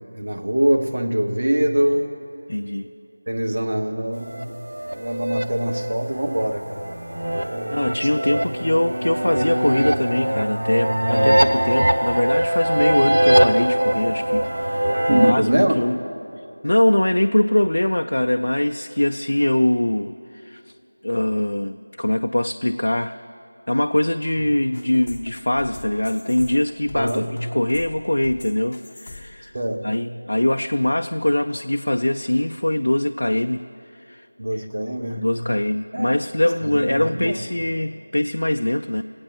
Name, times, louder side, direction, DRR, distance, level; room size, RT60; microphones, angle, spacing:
voice 1, 0.1-2.1 3.3-4.5 4.9-7.0 7.4-8.5 15.1-15.7 24.4-24.5 26.9-27.3 29.5-30.0 34.4-35.3 35.9-36.1 36.4-37.4, right 1 dB, 55° right, 3 dB, 1.4 m, -24 dB
voice 2, 2.5-2.9 7.5-16.0 16.6-20.6 21.0-23.2 23.7-29.5 29.8-33.6 33.9-34.3 35.2-39.0, left 1 dB, 70° left, 6 dB, 0.4 m, -22 dB
sound 1, 4.3-15.3, right 1 dB, 80° right, 0.8 m, -22 dB
sound 2, 24.7-29.5, left 2 dB, 30° left, 0.9 m, -42 dB
19.5 x 8.9 x 7.4 m, 2.8 s
figure-of-eight pair, 175°, 0 cm